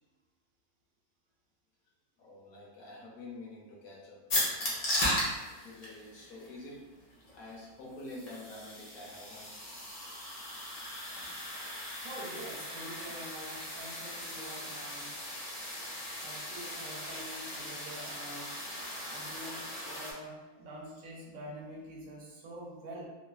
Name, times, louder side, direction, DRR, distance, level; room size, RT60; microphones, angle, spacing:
voice 1, 2.2-4.8 5.1-9.5, left 2 dB, 70° left, -3 dB, 1.1 m, -48 dB
sound 1, 4.3-20.1, left 1 dB, 45° left, 0.7 m, -38 dB
voice 2, 12.0-15.2 16.2-18.6 19.1-23.1, right 1 dB, 70° right, -3 dB, 0.9 m, -46 dB
3.1 x 2.1 x 2.3 m, 1.2 s
omnidirectional pair, 1.6 m